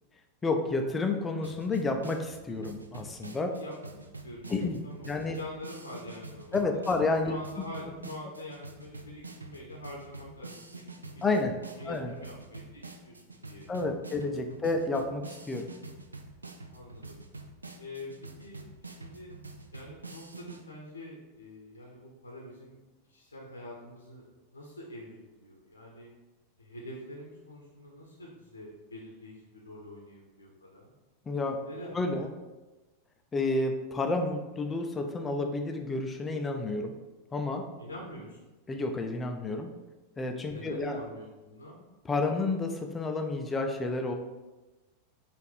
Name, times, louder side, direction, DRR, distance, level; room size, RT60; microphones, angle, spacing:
voice 1, 0.4-3.5 4.5-4.8 5.1-5.4 6.5-7.3 11.2-11.5 11.8-12.1 13.7-15.7 31.3-31.6 31.9-32.3 33.3-36.9 37.3-37.6 38.7-39.7 40.2-41.0 42.1-44.1, left 3 dB, 15° left, 4 dB, 0.5 m, -30 dB
sound 1, 1.4-20.6, right 3 dB, 80° right, 0.4 m, -46 dB
voice 2, 3.5-4.6 4.8-6.6 6.8-7.0 7.3-10.8 11.1-14.1 14.4-14.7 16.7-17.2 17.8-19.3 19.7-22.8 23.1-24.2 24.5-26.1 26.6-30.9 31.6-32.0 37.8-38.4 40.5-41.8, left 1 dB, 80° left, -2 dB, 0.8 m, -45 dB
5.3 x 2.6 x 3.9 m, 1.1 s
figure-of-eight pair, 90°, 0 cm